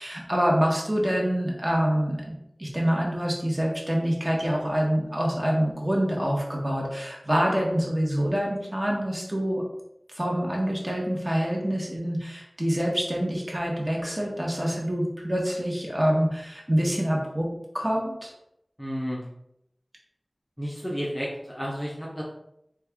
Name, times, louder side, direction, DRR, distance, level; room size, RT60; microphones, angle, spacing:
voice 1, 0.0-2.3 2.6-9.6 10.1-17.5 17.7-18.3, equal, 30° right, -2 dB, 1.0 m, -26 dB
voice 2, 18.8-19.2 20.6-22.2, equal, 5° left, -5 dB, 0.7 m, -32 dB
3.3 x 2.3 x 3.4 m, 0.79 s
wide cardioid pair, 45°, 0 cm